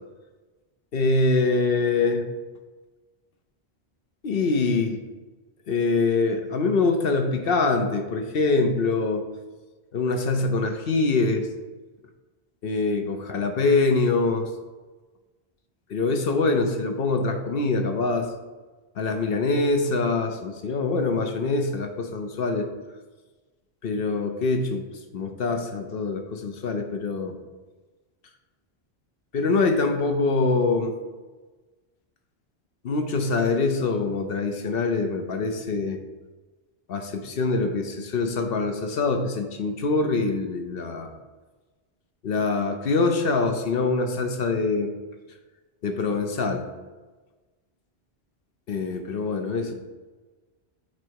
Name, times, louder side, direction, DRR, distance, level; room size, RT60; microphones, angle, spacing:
voice 1, 0.9-2.3 4.2-5.0 5.7-9.2 9.9-11.5 12.6-14.5 15.9-18.3 19.0-22.7 23.8-24.9 25.1-27.4 29.3-30.9 32.8-36.0 36.9-41.1 42.2-44.9 45.8-46.7 48.7-49.7, left 3 dB, 65° left, 6 dB, 0.9 m, -24 dB
8.5 x 3.3 x 4.7 m, 1.2 s
omnidirectional pair, 1.1 m